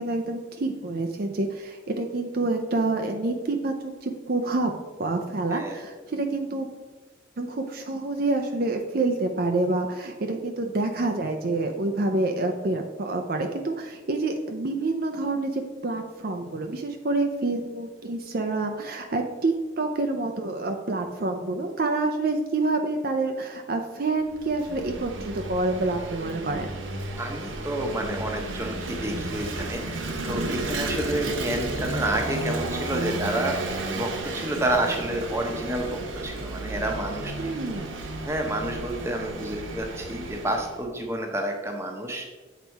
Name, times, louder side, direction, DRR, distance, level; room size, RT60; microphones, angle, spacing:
voice 1, 0.0-4.7 5.0-6.7 7.4-26.8 37.4-38.0, right 2 dB, 50° right, 4 dB, 0.5 m, -27 dB
voice 2, 5.5-5.8 27.2-30.0 30.3-33.6 33.9-37.5 38.3-42.3, right 1 dB, 15° right, 2 dB, 0.9 m, -29 dB
Vehicle / Engine, 24.2-40.8, right 2 dB, 90° right, 0.9 m, -33 dB
7.9 x 4.1 x 4.6 m, 1.3 s
head